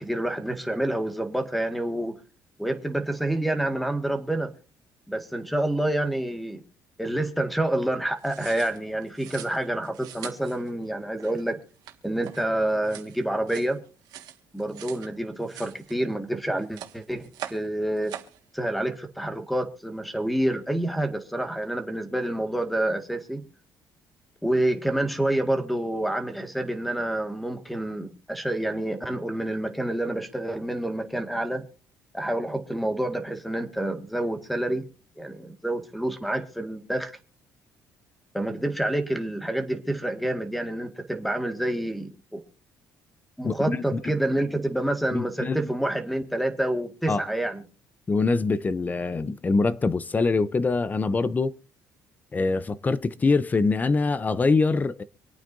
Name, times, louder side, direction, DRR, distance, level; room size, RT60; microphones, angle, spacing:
voice 1, 0.0-2.2 2.6-4.5 5.1-6.6 7.0-11.6 12.0-13.8 14.5-18.1 18.5-23.4 24.4-31.7 32.1-34.9 35.2-37.1 38.3-42.4 43.4-47.6, right 1 dB, ahead, 1.8 m, -28 dB
sound 1, 8.2-15.1 15.4-16.3 16.6-17.7 18.0-18.4, right 11 dB, 80° right, 1.7 m, -43 dB
voice 2, 43.4-44.0 45.1-45.7 47.1-47.2 48.1-51.5 52.3-55.0, left 3 dB, 25° left, 0.6 m, -24 dB
26.0 x 9.0 x 2.6 m
cardioid pair, 110°, 7 cm